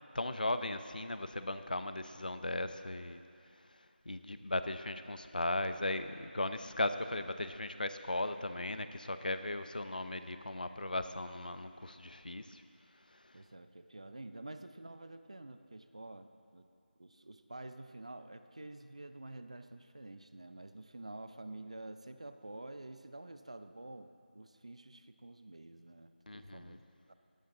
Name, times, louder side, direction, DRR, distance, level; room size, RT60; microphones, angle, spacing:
voice 1, 0.1-3.2 4.1-12.6 26.3-26.8, left 2 dB, 55° left, 10 dB, 0.8 m, -37 dB
voice 2, 13.3-16.7 17.0-27.1, right 2 dB, 35° right, 10 dB, 0.6 m, -49 dB
17.5 x 17.0 x 3.9 m, 2.4 s
figure-of-eight pair, 180°, 6 cm